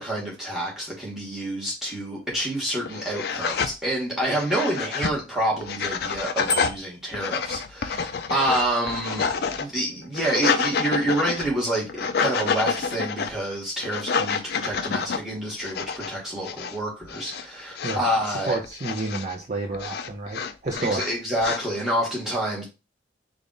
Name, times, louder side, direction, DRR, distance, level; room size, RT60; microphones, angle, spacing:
voice 1, 0.0-9.2 9.6-18.6 20.8-22.6, right 1 dB, 5° right, 1.4 m, -28 dB
sound 1, 2.3-2.4 2.8-3.7 4.2-5.2 5.6-6.8 7.1-9.6 10.0-11.5 11.9-13.3 13.8-15.2 15.6-16.1 16.4-16.8 17.0-17.4 17.7-19.3 19.7-21.6, left 5 dB, 55° left, 0.3 m, -28 dB
Bicycle bell, 6.5-7.1, left 2 dB, 20° left, 0.7 m, -29 dB
voice 2, 17.8-18.1 18.5-21.0, right 3 dB, 40° right, 0.5 m, -30 dB
3.4 x 2.4 x 3.8 m
head